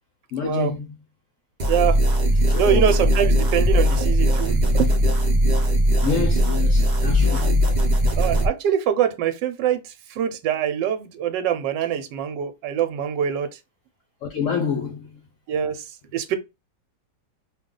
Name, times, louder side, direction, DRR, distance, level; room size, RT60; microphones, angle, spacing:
voice 1, 0.3-0.9 2.5-2.8 6.0-7.5 14.2-15.2, left 6 dB, 70° left, 0.7 m, -27 dB
sound 1, 1.6-8.5, equal, 50° right, 0.5 m, -19 dB
voice 2, 1.7-2.0 2.5-4.9 7.3-7.5 8.2-13.5 15.5-15.9 16.1-16.3, right 9 dB, 80° right, 1.2 m, -24 dB
2.8 x 2.3 x 3.6 m
omnidirectional pair, 1.9 m